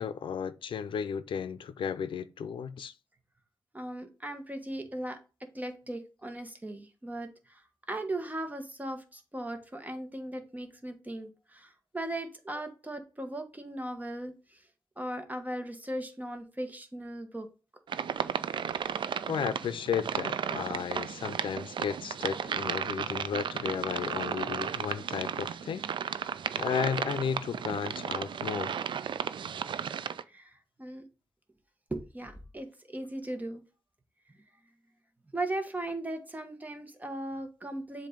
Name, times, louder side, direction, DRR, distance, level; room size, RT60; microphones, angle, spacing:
voice 1, 0.0-2.9 19.3-26.3 26.5-28.8, left 7 dB, 90° left, 0.5 m, -34 dB
voice 2, 3.7-7.6 7.9-14.6 15.0-17.5 30.3-31.0 31.9-33.6 35.3-38.1, right 1 dB, 20° right, 1.3 m, -38 dB
sound 1, 17.9-30.2, right 7 dB, 75° right, 0.4 m, -34 dB
7.4 x 2.7 x 5.2 m
cardioid pair, 75°, 8 cm